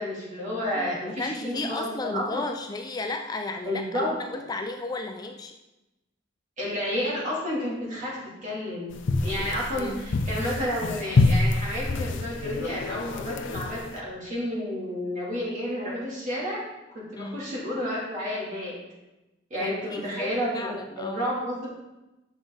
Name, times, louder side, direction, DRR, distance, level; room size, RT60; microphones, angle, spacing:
voice 1, 0.0-2.4 3.6-4.2 6.6-16.6 16.9-18.8 19.5-21.7, equal, 40° right, -6 dB, 2.9 m, -31 dB
voice 2, 0.7-5.5 9.8-10.0 17.2-17.4 19.6-21.3, left 2 dB, 20° left, 4 dB, 0.3 m, -34 dB
sound 1, 8.9-14.0, left 3 dB, 70° left, 0.5 m, -26 dB
7.2 x 5.9 x 3.9 m, 1.0 s
head